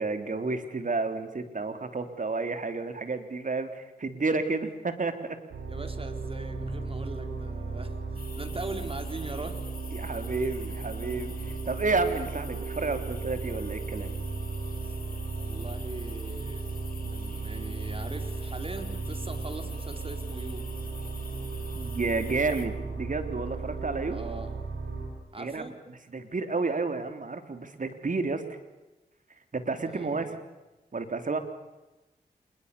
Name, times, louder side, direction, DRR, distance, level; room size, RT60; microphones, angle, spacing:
voice 1, 0.0-5.4 9.9-14.1 21.8-24.2 25.4-25.6 26.1-28.4 29.5-30.4 30.9-31.4, right 3 dB, 50° right, 8 dB, 3.6 m, -31 dB
sound 1, 5.5-25.1, right 3 dB, 85° right, 5.3 m, -35 dB
voice 2, 5.6-9.6 14.8-14.9 15.4-16.7 17.0-20.7 23.5-23.7 24.1-24.5 25.3-25.8 29.8-30.3, right 2 dB, 35° right, 7 dB, 4.4 m, -41 dB
sound 2, 8.2-22.7, left 5 dB, 55° left, 3.7 m, -48 dB
27.0 x 22.0 x 7.0 m, 1.1 s
supercardioid pair, 40°, 17 cm